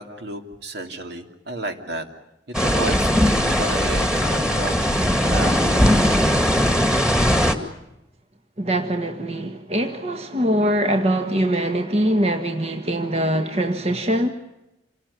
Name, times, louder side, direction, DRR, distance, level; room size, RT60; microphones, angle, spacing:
voice 1, 0.0-2.1 2.5-4.9 5.3-5.8, right 2 dB, 65° right, 5 dB, 2.8 m, -32 dB
sound 1, 2.5-7.6, equal, 5° right, 2.1 m, -19 dB
voice 2, 8.6-14.3, right 1 dB, 35° right, 6 dB, 1.5 m, -22 dB
28.0 x 18.5 x 9.9 m, 0.90 s
head